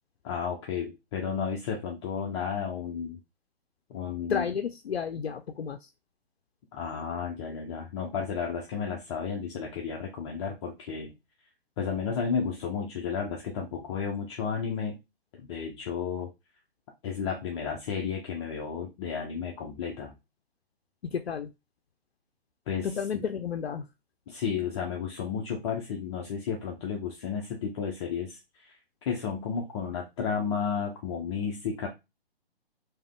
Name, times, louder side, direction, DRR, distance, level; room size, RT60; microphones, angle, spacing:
voice 1, 0.2-3.2 3.9-4.5 6.7-11.1 11.8-15.0 15.4-16.3 17.0-20.1 22.7-23.2 24.3-28.8 29.1-31.9, left 6 dB, 30° left, 1 dB, 0.6 m, -32 dB
voice 2, 4.3-5.9 21.0-21.5 22.8-23.9, left 7 dB, 85° left, 8 dB, 0.5 m, -32 dB
3.4 x 2.9 x 3.6 m, 0.24 s
figure-of-eight pair, 130°, 31 cm